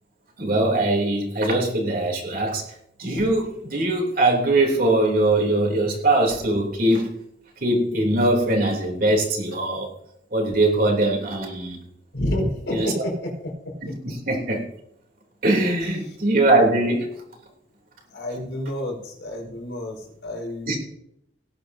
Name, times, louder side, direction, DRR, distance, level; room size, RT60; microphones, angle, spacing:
voice 1, 0.4-2.6 3.0-7.1 7.6-9.9 10.3-11.8 12.7-12.9 13.8-14.6 15.4-17.1 20.7-20.8, right 2 dB, 50° right, 0 dB, 3.3 m, -21 dB
voice 2, 12.1-13.7 18.1-20.8, left 1 dB, 80° left, -1 dB, 5.0 m, -29 dB
18.5 x 10.5 x 2.8 m, 0.77 s
head